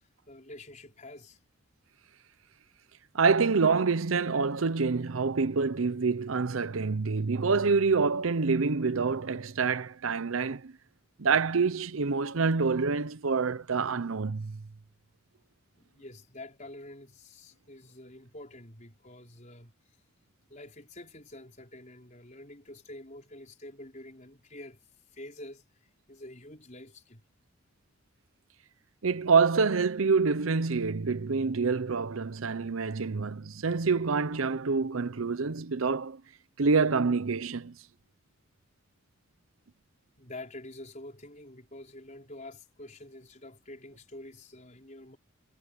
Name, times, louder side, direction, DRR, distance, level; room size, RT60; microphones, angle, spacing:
voice 1, 0.0-1.4 15.8-19.7 20.5-24.8 25.1-27.2 40.2-45.2, left 1 dB, 35° left, 5.0 m, -47 dB
voice 2, 3.1-10.7 11.2-14.6 29.0-36.2 36.6-37.7, right 4 dB, 85° right, 0.7 m, -27 dB
head